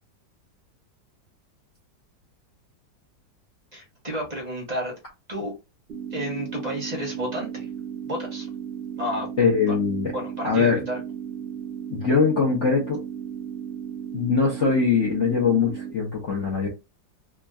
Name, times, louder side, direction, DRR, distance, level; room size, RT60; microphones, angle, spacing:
voice 1, 3.7-4.9 5.3-5.5 6.1-7.7 8.1-8.5 9.0-9.3 9.7-9.8 10.1-11.0, equal, 30° right, 0.9 m, -31 dB
sound 1, 5.9-15.9, right 8 dB, 55° right, 0.7 m, -35 dB
voice 2, 9.4-10.1 10.4-10.8 11.9-13.0 14.1-16.7, left 5 dB, 55° left, 0.8 m, -22 dB
3.5 x 2.1 x 2.3 m
omnidirectional pair, 2.0 m